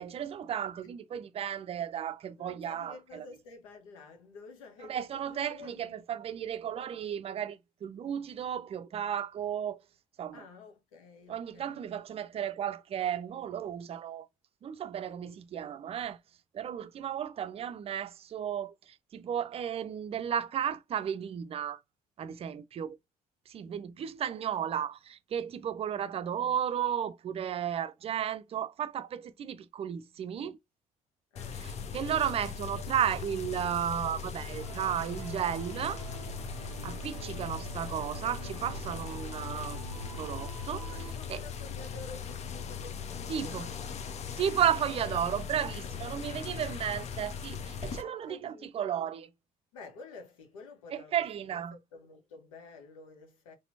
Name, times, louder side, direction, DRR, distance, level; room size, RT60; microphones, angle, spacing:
voice 1, 0.0-3.3 4.9-9.8 10.2-10.4 11.3-14.3 14.6-16.2 16.5-21.8 22.2-23.0 23.5-30.6 31.6-36.0 36.8-39.8 40.2-40.9 41.3-41.4 43.3-43.7 44.4-49.3 50.9-51.8, right 9 dB, 35° right, 0.5 m, -34 dB
voice 2, 2.4-6.0 10.3-11.9 25.9-26.0 31.3-31.7 40.9-44.0 45.0-45.3 45.8-46.4 48.0-48.9 49.7-51.2 51.7-53.5, left 3 dB, 70° left, 1.2 m, -50 dB
sound 1, 31.4-48.0, left 6 dB, 40° left, 0.7 m, -39 dB
sound 2, 34.5-41.1, right 9 dB, 85° right, 0.5 m, -45 dB
4.2 x 3.3 x 2.7 m
figure-of-eight pair, 50°, 18 cm